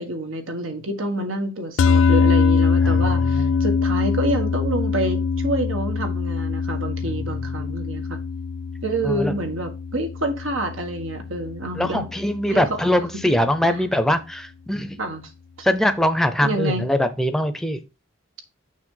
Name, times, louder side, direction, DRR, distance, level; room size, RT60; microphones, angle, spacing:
voice 1, 0.0-8.2 8.8-12.1 12.5-12.8 13.6-13.8 15.0-15.2 16.4-16.8, right 1 dB, 85° right, 1.6 m, -27 dB
sound 1, 1.8-12.2, left 5 dB, 65° left, 0.4 m, -23 dB
voice 2, 11.7-15.0 15.6-17.8, left 1 dB, ahead, 0.6 m, -22 dB
6.3 x 5.3 x 3.8 m
head